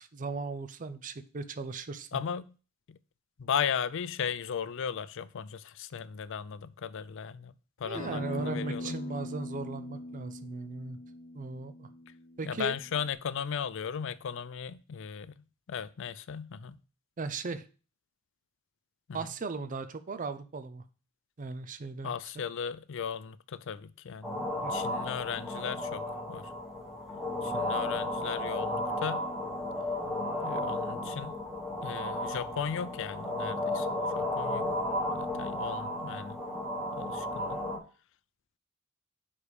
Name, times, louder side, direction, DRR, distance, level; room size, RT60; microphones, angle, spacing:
voice 1, 0.0-2.2 7.8-11.0 11.3-11.9 12.4-12.8 17.2-17.6 19.1-20.8 21.4-22.4 24.6-24.7, right 3 dB, 40° right, 0.5 m, -37 dB
voice 2, 2.1-2.5 2.9-3.0 3.4-7.5 7.8-9.0 12.4-15.3 15.7-16.8 22.0-26.0 26.3-26.4 27.4-29.2 30.4-31.4 31.8-33.9 34.1-34.6 35.1-36.4 37.0-37.6, left 7 dB, 65° left, 0.4 m, -36 dB
Acoustic guitar, 7.9-13.1, left 1 dB, 35° left, 1.1 m, -41 dB
sound 1, 24.2-37.8, left 1 dB, ahead, 1.4 m, -34 dB
5.5 x 5.0 x 4.8 m
head